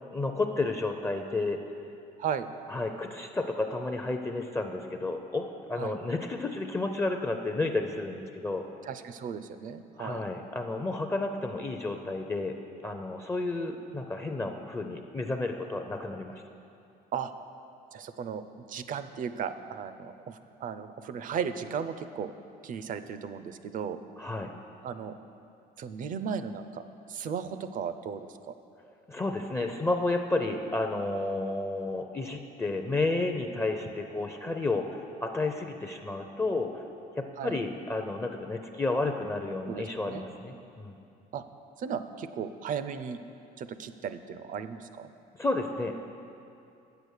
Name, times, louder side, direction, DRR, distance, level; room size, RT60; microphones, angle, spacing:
voice 1, 0.1-1.6 2.7-8.7 10.0-12.6 12.8-16.4 24.2-24.5 29.1-36.8 37.2-40.9 45.4-46.1, left 2 dB, 15° left, 5 dB, 0.5 m, -31 dB
voice 2, 8.8-10.2 17.1-17.3 17.9-22.3 22.6-24.0 24.8-25.2 25.8-26.8 27.1-28.5 37.4-37.6 39.7-40.2 41.3-41.4 41.8-43.2 43.6-45.1, right 7 dB, 50° right, 11 dB, 0.5 m, -36 dB
8.4 x 6.9 x 6.4 m, 2.6 s
cardioid pair, 110°, 17 cm